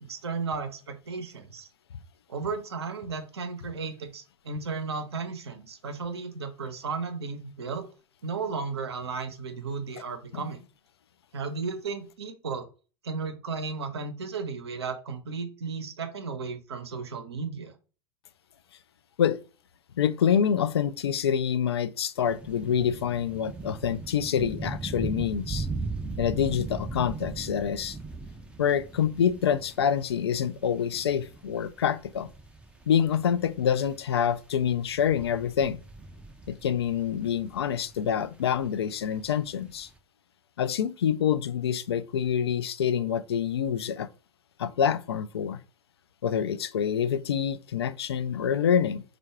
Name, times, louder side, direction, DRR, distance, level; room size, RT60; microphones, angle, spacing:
voice 1, 0.0-1.7 2.3-7.9 8.2-10.6 11.3-12.7 13.0-17.7, right 4 dB, 75° right, 0.9 m, -34 dB
voice 2, 20.0-25.7 26.2-28.0 28.6-32.3 32.9-35.8 36.5-39.9 40.6-44.1 44.6-45.6 46.2-49.0, left 8 dB, 75° left, 0.4 m, -26 dB
sound 1, 22.2-39.7 40.0-40.1, right 3 dB, 10° right, 0.5 m, -39 dB
4.5 x 2.5 x 4.5 m
figure-of-eight pair, 90°, 14 cm